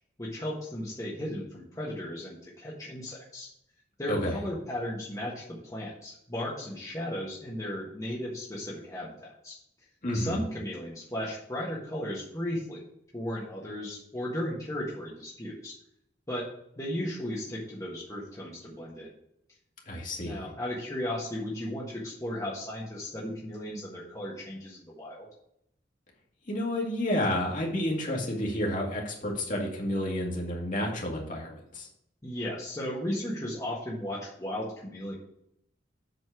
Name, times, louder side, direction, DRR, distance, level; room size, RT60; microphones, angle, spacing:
voice 1, 0.2-3.5 4.0-9.5 10.1-12.8 13.1-15.7 16.3-16.4 16.8-19.1 20.2-25.3 32.2-35.1, left 1 dB, 20° left, -5 dB, 1.5 m, -35 dB
voice 2, 4.1-4.4 10.0-10.4 19.9-20.5 26.5-31.9, left 1 dB, 45° left, -2 dB, 2.2 m, -30 dB
7.8 x 4.3 x 6.0 m, 0.75 s
head